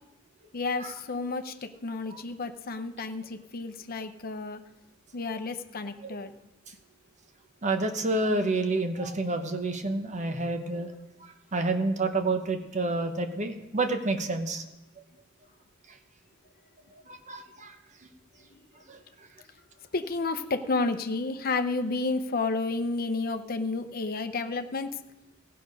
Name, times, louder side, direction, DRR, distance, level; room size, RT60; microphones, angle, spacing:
voice 1, 0.5-4.6 5.1-6.3 19.9-25.0, left 3 dB, 45° left, 8 dB, 0.7 m, -31 dB
voice 2, 7.6-10.9 11.2-14.6 17.1-17.8 18.9-19.0, right 2 dB, 35° right, 6 dB, 0.9 m, -29 dB
16.0 x 6.6 x 5.4 m, 0.97 s
head